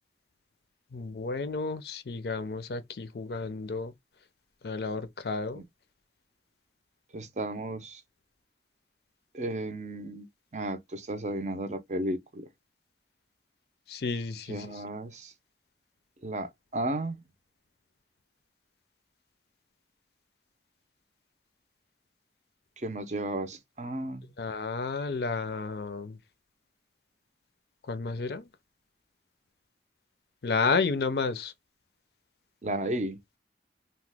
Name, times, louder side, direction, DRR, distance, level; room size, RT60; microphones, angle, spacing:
voice 1, 0.9-3.9 4.6-5.6 13.9-14.7 24.4-26.2 27.9-28.5 30.4-31.5, left 4 dB, 65° left, 0.5 m, -31 dB
voice 2, 7.1-8.0 9.3-10.3 10.5-12.5 14.5-15.3 16.2-17.2 22.8-24.3 32.6-33.2, right 1 dB, 40° right, 0.5 m, -34 dB
2.9 x 2.1 x 3.3 m
head